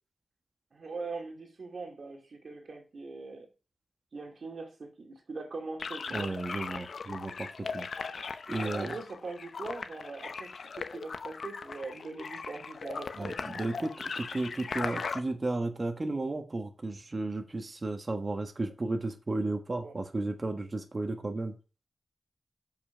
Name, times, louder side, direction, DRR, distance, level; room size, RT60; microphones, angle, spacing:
voice 1, 0.7-3.5 4.1-6.3 8.1-8.2 8.6-13.4 19.8-20.0, right 3 dB, 65° right, 2 dB, 2.2 m, -41 dB
sound 1, 5.8-15.2, left 5 dB, 75° left, 0.7 m, -39 dB
voice 2, 6.1-7.9 8.5-8.9 13.2-21.6, right 2 dB, 40° right, 5 dB, 1.3 m, -34 dB
7.0 x 5.7 x 5.7 m, 0.34 s
cardioid pair, 65°, 0 cm